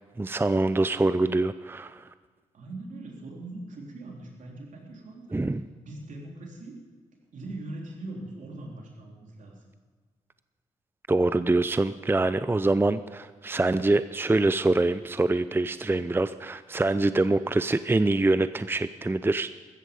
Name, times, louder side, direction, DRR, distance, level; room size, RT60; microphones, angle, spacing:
voice 1, 0.0-2.0 5.3-5.7 11.1-19.5, right 2 dB, 15° right, 13 dB, 0.5 m, -25 dB
voice 2, 2.5-5.2 5.8-6.8 7.3-9.6, right 2 dB, 70° right, 0 dB, 3.6 m, -41 dB
15.5 x 14.0 x 5.4 m, 1.4 s
supercardioid pair, 50°, 13 cm